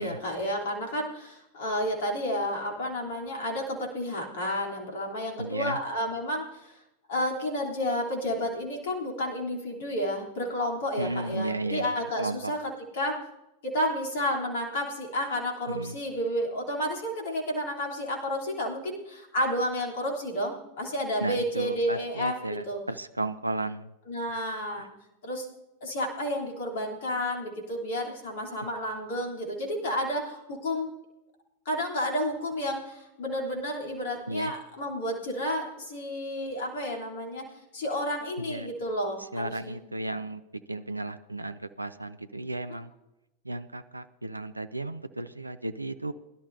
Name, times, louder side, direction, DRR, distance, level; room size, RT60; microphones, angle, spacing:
voice 1, 0.0-6.8 7.1-12.6 12.9-13.2 13.6-22.8 24.1-24.9 25.2-25.5 25.8-30.9 31.6-37.5 37.7-39.8 42.7-42.8, equal, 55° left, 0 dB, 3.2 m, -31 dB
voice 2, 5.4-5.8 11.0-11.9 12.2-12.5 15.7-16.0 21.2-23.9 24.8-24.9 34.3-34.5 38.4-38.7 39.2-40.4 40.7-42.9 43.4-46.1, right 2 dB, 85° right, 12 dB, 0.5 m, -34 dB
22.0 x 11.5 x 2.7 m, 0.94 s
figure-of-eight pair, 90°, 0 cm